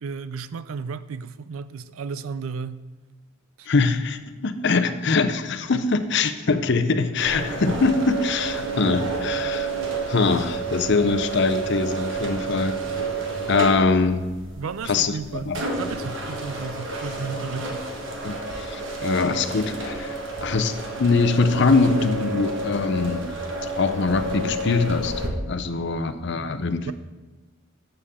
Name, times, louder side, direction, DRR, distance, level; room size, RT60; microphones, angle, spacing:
voice 1, 0.0-2.9 3.6-3.7 5.7-5.9 14.6-17.9 26.3-26.9, right 5 dB, 80° right, 14 dB, 0.4 m, -34 dB
voice 2, 3.7-9.7 10.1-12.7 13.5-14.3 14.9-15.1 15.5-15.6 18.2-20.2 20.4-23.3 23.8-26.9, left 4 dB, 55° left, 10 dB, 0.6 m, -23 dB
sound 1, 7.2-25.3, right 2 dB, 60° right, 1.5 m, -30 dB
13.5 x 7.0 x 3.6 m, 1.2 s
head